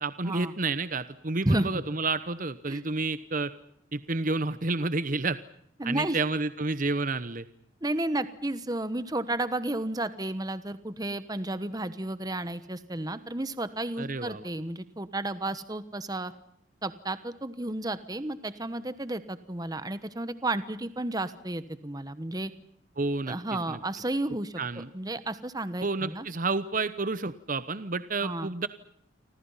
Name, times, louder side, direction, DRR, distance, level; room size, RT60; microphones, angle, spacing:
voice 1, 0.0-3.5 3.9-5.4 5.8-7.4 14.0-14.4 23.0-23.4 23.7-23.8 24.6-24.9 25.8-28.7, right 3 dB, 40° right, 13 dB, 1.0 m, -30 dB
voice 2, 5.8-6.2 7.8-16.3 16.8-22.5 23.3-26.3 28.2-28.5, right 1 dB, 20° right, 13 dB, 1.1 m, -32 dB
29.0 x 25.5 x 5.7 m, 0.68 s
head